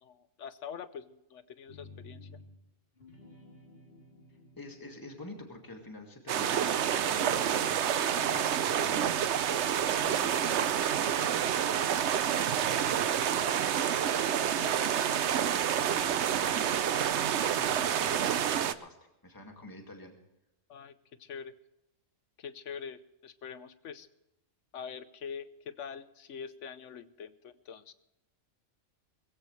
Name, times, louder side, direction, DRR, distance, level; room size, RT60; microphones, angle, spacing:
voice 1, 0.0-2.3 20.7-20.9 21.2-21.5 22.4-24.1 24.7-27.9, left 7 dB, 70° left, 13 dB, 1.2 m, -44 dB
sound 1, 1.7-2.6 2.9-6.0 6.3-9.5 9.8-12.5, left 3 dB, 50° left, 3.4 m, -54 dB
voice 2, 4.6-9.1 10.0-20.2, left 1 dB, 15° left, 2 dB, 2.1 m, -48 dB
sound 2, 6.3-18.7, right 9 dB, 65° right, 1.0 m, -28 dB
21.0 x 15.5 x 3.2 m, 0.88 s
omnidirectional pair, 1.3 m